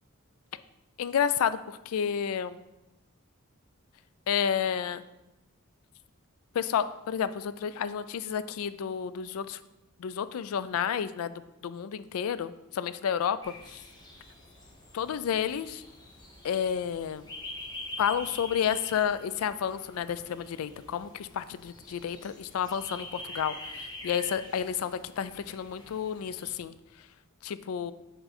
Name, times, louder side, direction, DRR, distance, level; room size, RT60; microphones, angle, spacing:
voice 1, 1.0-2.6 4.3-5.0 6.5-9.6 10.0-13.8 14.9-15.8 16.4-17.3 18.0-26.7 27.4-27.9, left 8 dB, 70° left, 14 dB, 0.3 m, -31 dB
sound 1, 13.4-26.5, left 1 dB, 20° left, 1.1 m, -45 dB
6.9 x 3.8 x 4.2 m, 0.96 s
head